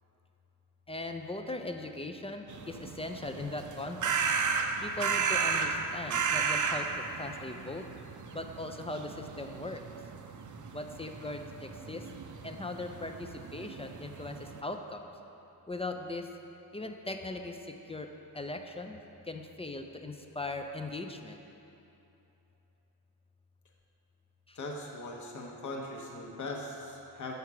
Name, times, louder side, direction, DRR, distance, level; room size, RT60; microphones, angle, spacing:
voice 1, 0.9-4.1 4.8-6.9 7.2-7.8 8.3-9.8 10.7-12.0 12.4-15.0 15.7-16.3 16.7-17.6 17.9-18.1 18.3-19.0 19.3-21.4 24.5-24.6, left 2 dB, 15° left, 4 dB, 0.3 m, -39 dB
sound 1, 2.5-14.6, right 5 dB, 45° right, 0.5 m, -34 dB
voice 2, 24.5-27.3, left 2 dB, 45° left, -1 dB, 0.9 m, -40 dB
6.8 x 4.6 x 4.7 m, 2.9 s
cardioid pair, 70°, 41 cm